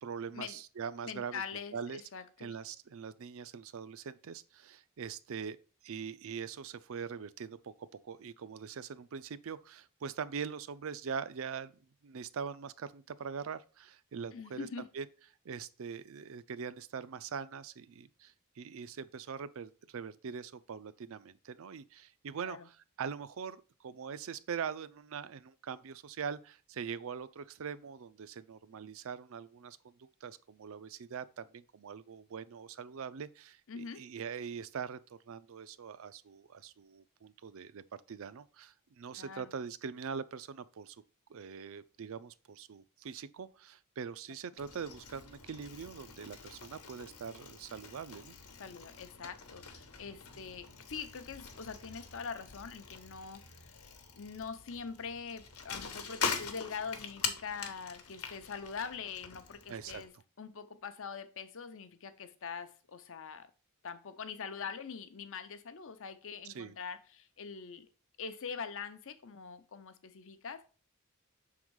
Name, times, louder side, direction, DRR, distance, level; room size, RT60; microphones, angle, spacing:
voice 1, 0.0-2.0 2.4-5.6 5.8-11.7 12.0-15.1 15.4-37.8 38.1-41.0 41.3-48.4 59.7-60.0 66.4-66.8, right 6 dB, 65° right, 0.4 m, -42 dB
voice 2, 1.1-2.6 14.3-14.9 22.4-22.7 33.7-34.0 39.2-39.5 48.5-53.7 54.1-60.1 60.4-63.5 63.8-67.9 68.2-70.7, left 6 dB, 65° left, 0.7 m, -43 dB
Bicycle, 44.6-60.1, left 5 dB, 90° left, 1.1 m, -43 dB
6.1 x 3.8 x 4.7 m
head